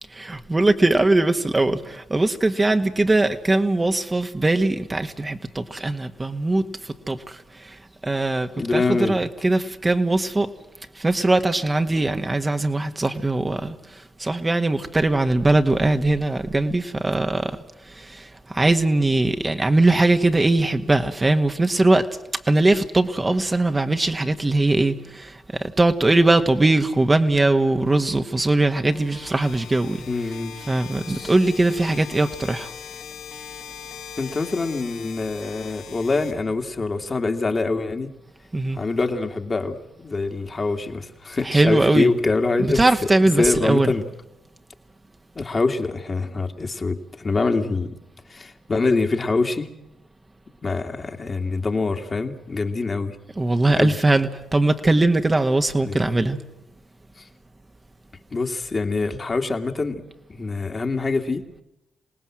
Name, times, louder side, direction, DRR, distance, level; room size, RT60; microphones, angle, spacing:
voice 1, 0.1-10.5 10.9-17.6 17.9-22.1 22.5-30.0 30.7-32.7 38.5-38.8 41.4-42.1 42.6-43.9 53.4-56.4, right 2 dB, 25° right, 7 dB, 1.5 m, -21 dB
voice 2, 8.6-9.2 30.1-30.5 31.1-31.3 34.2-38.1 38.7-42.8 43.4-44.1 45.4-48.0 48.3-49.7 50.6-53.2 53.7-54.0 55.8-56.0 57.2-57.3 58.3-60.0 60.3-61.4, left 3 dB, 40° left, 5 dB, 2.3 m, -24 dB
sound 1, 28.9-36.9, left 7 dB, 85° left, 5.2 m, -40 dB
26.5 x 18.5 x 7.6 m, 0.90 s
hypercardioid pair, 50°, 0 cm